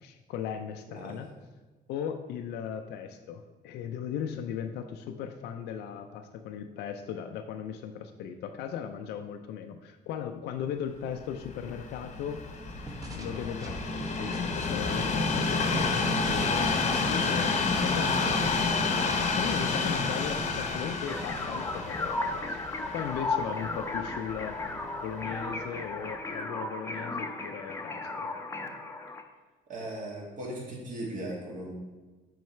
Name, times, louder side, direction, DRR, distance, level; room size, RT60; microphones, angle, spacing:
voice 1, 0.0-1.3 1.9-12.4 13.1-15.7 16.3-24.7 25.0-28.3, left 8 dB, 80° left, 6 dB, 0.5 m, -37 dB
Train, 11.3-24.5 25.2-25.3, left 4 dB, 40° left, 0.8 m, -29 dB
sound 1, 12.7-14.7 15.0-17.4, right 1 dB, 20° right, 1.0 m, -41 dB
sound 2, 21.1-29.2, left 3 dB, 15° left, 0.6 m, -35 dB
voice 2, 29.7-31.7, right 1 dB, 50° right, -3 dB, 2.0 m, -38 dB
6.2 x 4.8 x 4.4 m, 1.2 s
cardioid pair, 110°, 17 cm